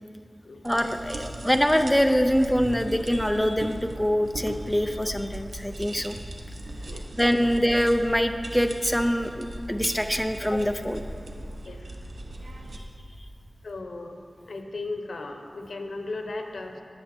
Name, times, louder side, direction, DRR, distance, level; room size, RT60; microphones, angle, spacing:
voice 1, 0.6-6.2 7.2-11.0, equal, 5° left, 6 dB, 0.6 m, -24 dB
sound 1, 0.6-12.8, right 1 dB, 85° right, 1.1 m, -39 dB
voice 2, 6.9-7.2 11.6-12.1 13.6-16.8, left 2 dB, 80° left, 4 dB, 1.1 m, -37 dB
19.5 x 7.1 x 4.5 m, 2.3 s
wide cardioid pair, 80°, 0 cm